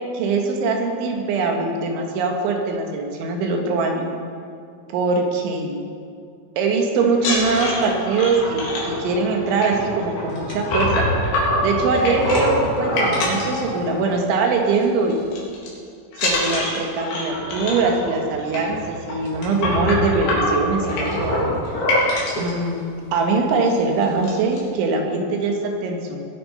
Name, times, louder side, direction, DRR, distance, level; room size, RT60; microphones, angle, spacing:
voice 1, 0.0-4.1 4.9-5.8 6.6-11.1 11.6-15.2 16.2-21.6 22.0-22.8 23.1-26.2, right 4 dB, 75° right, 2 dB, 3.9 m, -22 dB
sound 1, 7.1-14.3 14.6-14.8 15.1-15.7 16.1-22.5 23.2-23.3 23.6-23.8 24.0-24.6, left 1 dB, 65° left, 5.3 m, -24 dB
21.0 x 8.9 x 5.6 m, 2.3 s
omnidirectional pair, 5.5 m